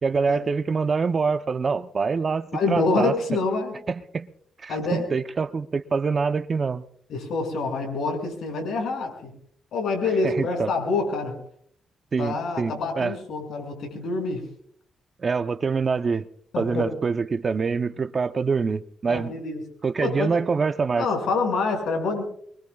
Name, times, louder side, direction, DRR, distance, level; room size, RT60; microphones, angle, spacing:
voice 1, 0.0-3.1 3.9-4.3 4.6-6.8 10.2-10.7 12.1-13.1 15.2-16.3 16.6-19.3 19.8-21.1, right 5 dB, 40° right, 0.8 m, -25 dB
voice 2, 2.5-3.7 4.7-5.1 7.1-9.3 9.7-11.4 12.2-14.4 16.5-16.9 19.1-19.6 20.0-20.4 20.9-22.2, left 3 dB, 85° left, 6.6 m, -26 dB
25.5 x 23.5 x 2.4 m
cardioid pair, 105°, 0 cm